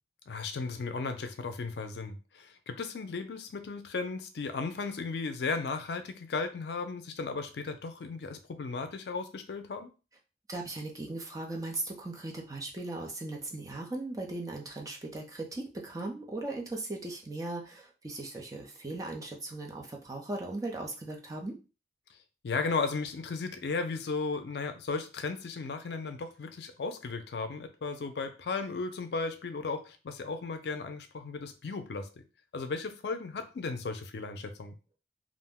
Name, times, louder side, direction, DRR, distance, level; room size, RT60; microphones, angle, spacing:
voice 1, 0.3-9.9 22.4-32.1 32.5-34.7, left 4 dB, 65° left, 8 dB, 0.4 m, -35 dB
voice 2, 10.5-21.6, right 2 dB, 20° right, 1 dB, 0.5 m, -38 dB
2.4 x 2.1 x 3.5 m, 0.32 s
head